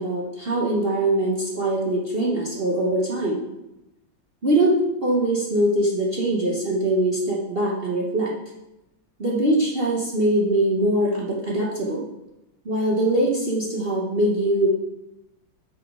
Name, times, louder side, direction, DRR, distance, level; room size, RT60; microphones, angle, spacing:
voice 1, 0.0-3.5 4.4-4.8 5.0-8.3 9.2-12.1 12.6-14.7, right 1 dB, 40° right, -4 dB, 1.0 m, -22 dB
9.1 x 6.2 x 3.7 m, 0.94 s
omnidirectional pair, 2.1 m